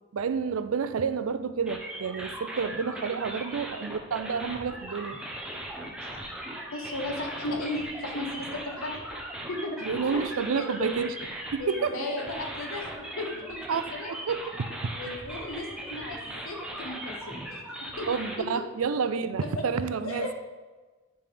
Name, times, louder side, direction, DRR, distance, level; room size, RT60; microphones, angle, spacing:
voice 1, 0.1-5.2 9.8-11.1 11.5-11.9 13.7-13.8 14.1-14.5 14.8-14.9 18.1-20.3, right 6 dB, 85° right, 12 dB, 0.4 m, -29 dB
sound 1, 1.7-18.4, right 1 dB, 5° right, 0.7 m, -39 dB
voice 2, 6.7-9.0 9.5-10.9 11.6-13.6 13.9-14.1 14.9-18.1 18.4-18.5 19.4-19.5 20.0-20.3, left 2 dB, 80° left, 2 dB, 1.3 m, -35 dB
10.0 x 3.4 x 5.1 m, 1.3 s
head